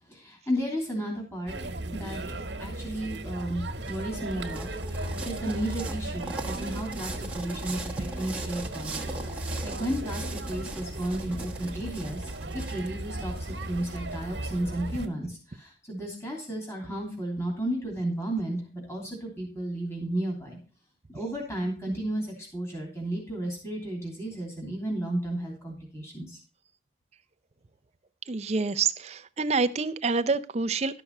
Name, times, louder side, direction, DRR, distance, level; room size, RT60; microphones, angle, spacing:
voice 1, 0.1-1.6 1.9-12.3 12.5-20.6 21.1-22.3 22.5-26.4, right 1 dB, 15° left, -1 dB, 3.0 m, -33 dB
sound 1, 1.5-15.1, right 1 dB, 80° right, 1.4 m, -36 dB
sound 2, 3.3-14.2, right 3 dB, 10° right, 1.2 m, -41 dB
voice 2, 28.3-31.0, right 4 dB, 40° right, 11 dB, 0.6 m, -27 dB
12.0 x 5.9 x 5.4 m, 0.35 s
head